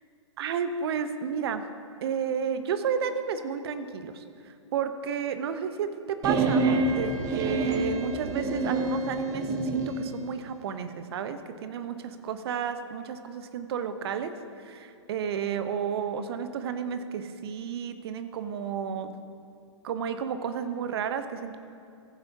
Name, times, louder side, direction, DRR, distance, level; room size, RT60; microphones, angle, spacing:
voice 1, 0.4-1.6 2.0-14.3 14.6-19.1 19.8-21.6, right 7 dB, 55° right, 10 dB, 0.7 m, -32 dB
sound 1, 6.2-10.0, right 3 dB, 25° right, 0.8 m, -27 dB
15.0 x 8.9 x 2.7 m, 2.4 s
figure-of-eight pair, 120°, 16 cm